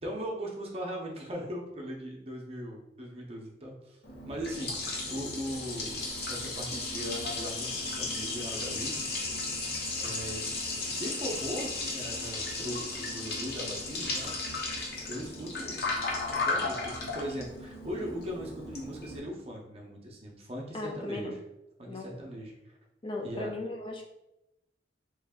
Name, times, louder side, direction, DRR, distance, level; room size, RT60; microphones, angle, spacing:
voice 1, 0.0-4.0 4.2-6.0 6.3-9.0 10.0-10.5 10.9-14.3 15.1-15.8 16.3-21.4 21.8-22.5 23.2-23.5, equal, 35° right, -1 dB, 0.7 m, -39 dB
Liquid, 4.0-19.2, left 3 dB, 60° left, 0.7 m, -35 dB
voice 2, 20.7-21.4 21.9-22.2 23.0-24.0, left 2 dB, 30° left, 2 dB, 0.4 m, -37 dB
3.1 x 2.5 x 3.5 m, 0.89 s
head